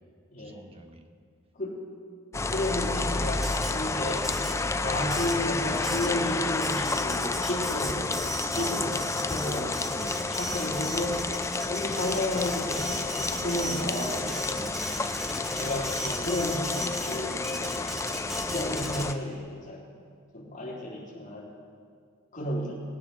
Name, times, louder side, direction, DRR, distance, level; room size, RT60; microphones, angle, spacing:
voice 1, 0.4-1.1 8.5-9.0 9.9-10.3 14.5-15.2 18.3-18.7, right 2 dB, 30° right, 5 dB, 1.1 m, -43 dB
sound 1, 2.3-19.1, left 3 dB, 15° left, 0.4 m, -30 dB
voice 2, 2.5-4.3 4.8-8.9 9.3-9.8 10.3-11.3 11.7-14.7 15.3-17.8 18.4-19.9 20.3-21.5 22.3-22.7, left 1 dB, 40° left, -5 dB, 3.6 m, -32 dB
Printer, 3.2-19.3, equal, ahead, 1.2 m, -38 dB
20.0 x 9.1 x 6.0 m, 2.2 s
head